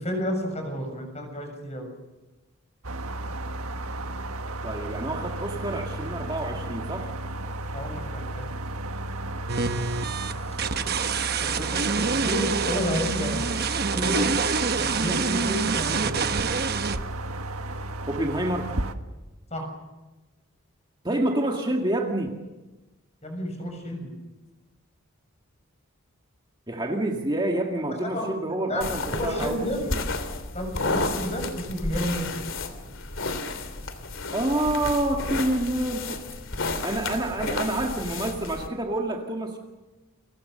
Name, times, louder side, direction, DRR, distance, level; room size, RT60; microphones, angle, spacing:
voice 1, 0.0-1.9 7.6-8.5 11.4-13.4 13.9-14.3 14.8-16.2 19.5-19.6 23.2-24.1 28.0-28.3 28.7-28.8 29.1-29.8 30.5-32.4, equal, 30° left, 4 dB, 6.8 m, -31 dB
sound 1, 2.8-18.9, right 1 dB, 85° right, 1.5 m, -33 dB
voice 2, 4.6-7.1 10.9-11.0 11.4-12.0 18.1-18.7 21.0-22.4 26.7-30.0 34.3-36.3 36.8-39.6, right 1 dB, 20° right, 1 dB, 2.0 m, -28 dB
sound 2, 9.5-17.0, right 5 dB, 45° right, 1.1 m, -26 dB
sound 3, 28.8-38.7, left 3 dB, 60° left, 2.9 m, -32 dB
30.0 x 24.0 x 6.7 m, 1.1 s
head